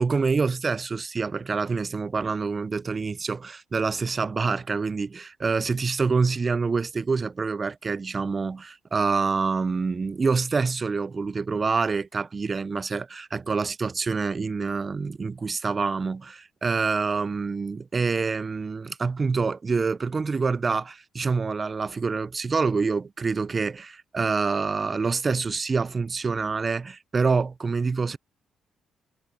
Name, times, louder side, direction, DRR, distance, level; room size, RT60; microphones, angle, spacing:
voice 1, 0.0-28.2, right 4 dB, 35° right, 0.4 m, -26 dB
cardioid pair, 90°, 0 cm